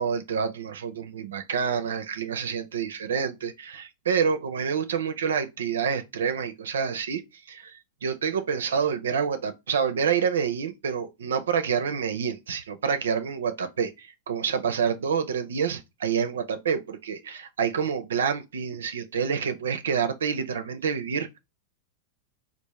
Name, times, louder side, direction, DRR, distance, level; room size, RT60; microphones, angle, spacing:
voice 1, 0.0-7.2 7.5-21.4, right 6 dB, 85° right, 0.4 m, -28 dB
3.5 x 2.4 x 3.1 m
hypercardioid pair, 120°, 0 cm